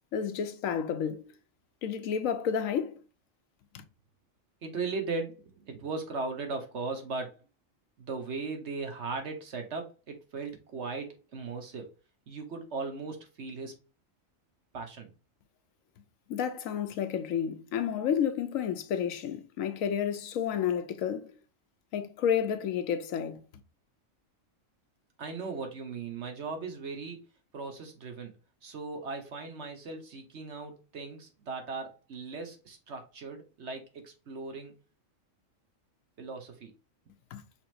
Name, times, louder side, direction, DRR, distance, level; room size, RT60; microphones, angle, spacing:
voice 1, 0.1-1.3 1.8-3.0 3.7-3.8 16.3-21.4 21.9-23.4 37.3-37.4, left 8 dB, 85° left, 1.1 m, -31 dB
voice 2, 4.6-7.4 8.0-11.9 12.3-13.8 14.7-15.1 25.2-27.2 27.5-28.3 28.6-34.8 36.2-36.7, right 4 dB, 60° right, 1.3 m, -38 dB
5.6 x 3.5 x 2.6 m
omnidirectional pair, 1.4 m